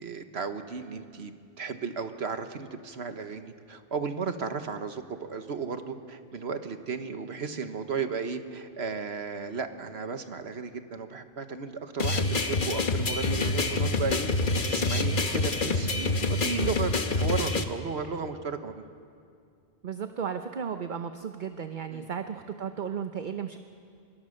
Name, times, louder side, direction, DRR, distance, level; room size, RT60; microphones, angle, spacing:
voice 1, 0.0-18.8 21.9-22.1, right 5 dB, 75° right, 8 dB, 1.5 m, -34 dB
sound 1, 12.0-17.6, left 3 dB, 50° left, 1.3 m, -27 dB
voice 2, 19.8-23.6, right 7 dB, 50° right, 8 dB, 0.9 m, -34 dB
25.5 x 22.0 x 6.5 m, 2.3 s
omnidirectional pair, 1.1 m